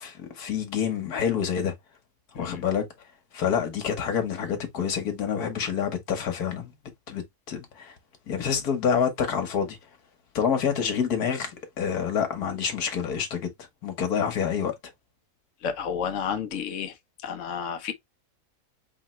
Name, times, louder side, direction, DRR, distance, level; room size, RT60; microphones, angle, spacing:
voice 1, 0.0-1.7 2.3-2.8 3.3-6.7 7.1-7.2 7.5-7.9 8.3-9.8 10.3-13.5 13.8-14.7, left 7 dB, 75° left, 1.7 m, -27 dB
voice 2, 15.6-16.9 17.2-17.9, left 7 dB, 55° left, 1.2 m, -31 dB
4.7 x 3.5 x 3.0 m
omnidirectional pair, 1.6 m